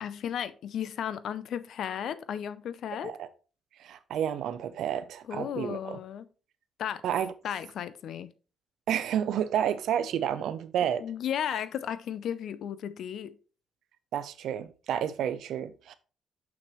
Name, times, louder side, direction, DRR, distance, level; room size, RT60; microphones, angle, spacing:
voice 1, 0.0-3.1 5.3-6.3 6.8-7.0 7.4-8.3 11.0-13.4, left 9 dB, 70° left, 0.5 m, -34 dB
voice 2, 3.8-6.0 7.0-7.3 8.9-11.0 14.1-15.9, right 9 dB, 75° right, 0.6 m, -30 dB
6.3 x 6.0 x 3.0 m
cardioid pair, 90°, 0 cm